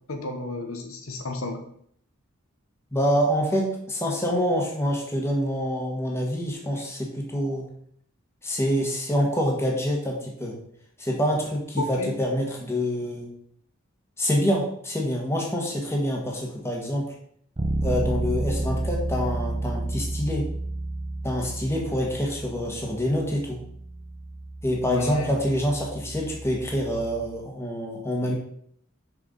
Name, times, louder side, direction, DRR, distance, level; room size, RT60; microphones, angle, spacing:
voice 1, 0.1-1.6 11.8-12.2 24.9-25.3, left 2 dB, 80° left, 4 dB, 1.1 m, -31 dB
voice 2, 2.9-7.7 8.4-10.6 11.0-13.3 14.2-17.1 17.8-20.5 21.2-23.6 24.6-28.3, equal, 10° left, -1 dB, 1.5 m, -26 dB
Bass guitar, 17.6-27.3, right 2 dB, 30° right, 0.6 m, -31 dB
6.3 x 4.7 x 5.2 m, 0.66 s
head